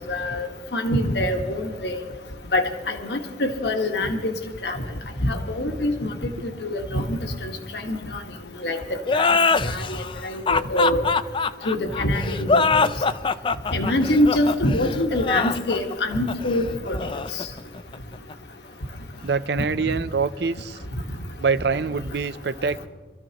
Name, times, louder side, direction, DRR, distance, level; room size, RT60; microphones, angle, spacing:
voice 1, 0.1-2.0 2.5-4.3 4.6-4.8 5.2-6.1 6.6-8.2 8.6-9.3 9.6-11.1 11.6-12.6 13.7-17.0 17.3-17.4, left 1 dB, 70° left, 4 dB, 1.4 m, -24 dB
sound 1, 9.0-18.3, left 4 dB, 30° left, 0.4 m, -23 dB
voice 2, 19.2-20.8 21.4-22.9, right 5 dB, 70° right, 14 dB, 0.6 m, -25 dB
25.0 x 13.5 x 2.9 m, 1.4 s
head